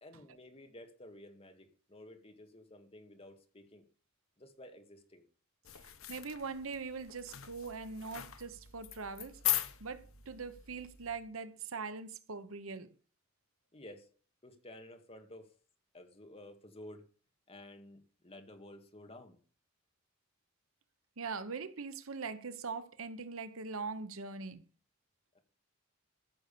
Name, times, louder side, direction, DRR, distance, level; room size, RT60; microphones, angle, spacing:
voice 1, 0.0-3.9 4.4-5.2 13.7-14.1 14.4-15.6 15.9-17.1 17.5-19.4 25.3-25.4, left 1 dB, 30° left, 2.0 m, -53 dB
sound 1, 5.6-11.2, left 13 dB, 80° left, 1.3 m, -40 dB
voice 2, 6.1-9.4 9.8-12.9 21.2-24.6, right 4 dB, 75° right, 1.0 m, -42 dB
14.5 x 6.5 x 6.9 m
head